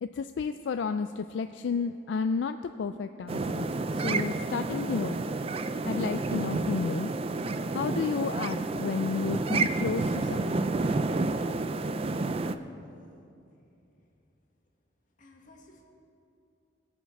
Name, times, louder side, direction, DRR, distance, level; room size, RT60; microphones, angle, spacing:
voice 1, 0.0-3.7 3.9-5.2 5.8-7.1 7.7-10.7, left 5 dB, 70° left, 9 dB, 0.3 m, -32 dB
sound 1, 3.3-12.6, right 3 dB, 30° right, 0.4 m, -30 dB
voice 2, 11.9-12.9 15.2-15.8, left 2 dB, 45° left, 0 dB, 1.7 m, -54 dB
21.5 x 7.2 x 4.6 m, 2.7 s
head